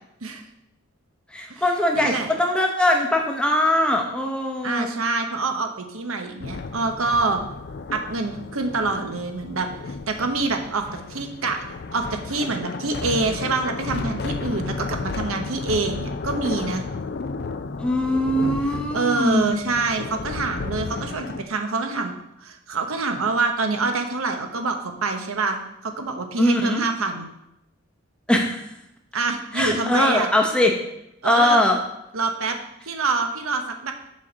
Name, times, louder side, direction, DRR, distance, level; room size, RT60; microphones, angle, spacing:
voice 1, 1.3-4.9 17.8-19.5 26.4-26.8 28.3-28.7 29.5-30.8 31.2-31.8, left 1 dB, 5° left, 1 dB, 0.8 m, -21 dB
voice 2, 1.9-2.3 4.6-7.4 7.9-16.8 18.9-22.1 22.4-27.3 29.1-30.3 31.2-31.6 32.1-33.9, right 3 dB, 80° right, 5 dB, 1.0 m, -26 dB
sound 1, 6.4-21.4, left 4 dB, 50° left, 0.4 m, -33 dB
7.3 x 4.2 x 6.2 m, 0.82 s
head